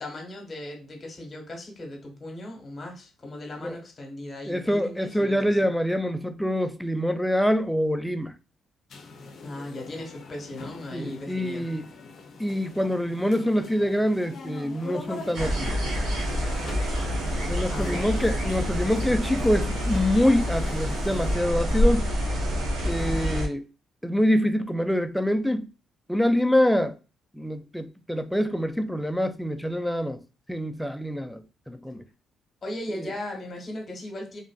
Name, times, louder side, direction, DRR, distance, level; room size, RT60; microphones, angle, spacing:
voice 1, 0.0-5.4 9.4-11.7 17.7-18.0 32.6-34.4, left 1 dB, 35° left, 1.2 m, -37 dB
voice 2, 4.5-8.3 10.9-11.8 12.4-15.8 17.4-22.1 22.8-23.6 24.0-25.7 26.1-27.0 27.3-30.2 30.5-32.0, equal, ahead, 0.3 m, -25 dB
sound 1, 8.9-21.3, left 4 dB, 60° left, 0.5 m, -43 dB
sound 2, 15.3-23.5, equal, 80° right, 1.1 m, -27 dB
3.0 x 2.5 x 2.2 m
cardioid pair, 90°, 0 cm